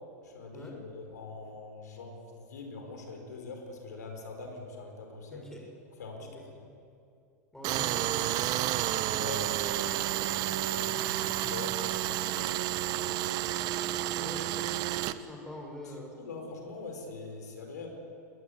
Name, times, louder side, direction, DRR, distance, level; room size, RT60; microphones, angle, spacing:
voice 1, 0.2-5.5 6.0-6.3 9.1-10.0 10.4-12.3 14.6-14.7 16.2-17.9, left 3 dB, 75° left, 3 dB, 5.0 m, -43 dB
voice 2, 5.3-5.7 6.2-6.3 6.5-6.7 7.5-9.5 11.0-11.4 13.0-13.2 13.5-16.1, left 1 dB, 5° left, 0 dB, 6.7 m, -46 dB
Tools, 7.6-15.1, right 14 dB, 45° right, 1.1 m, -31 dB
21.0 x 18.5 x 9.8 m, 2.5 s
hypercardioid pair, 95°, 9 cm